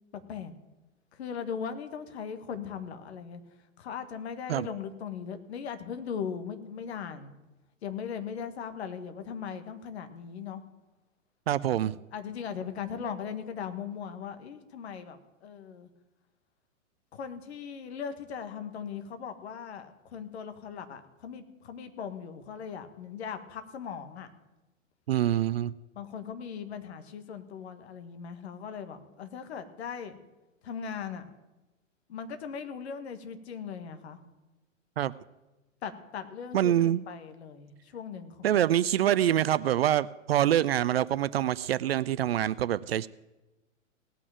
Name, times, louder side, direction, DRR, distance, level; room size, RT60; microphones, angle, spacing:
voice 1, 0.1-0.5 1.1-3.4 3.8-7.3 7.8-10.6 12.1-15.9 17.1-24.3 25.9-30.2 30.6-31.3 32.1-34.2 35.8-38.8, left 7 dB, 55° left, 9 dB, 1.6 m, -39 dB
voice 2, 11.5-12.0 25.1-25.7 35.0-35.1 36.5-37.0 38.4-43.1, right 11 dB, 50° right, 18 dB, 0.5 m, -25 dB
18.0 x 6.0 x 8.8 m, 1.1 s
figure-of-eight pair, 105°, 39 cm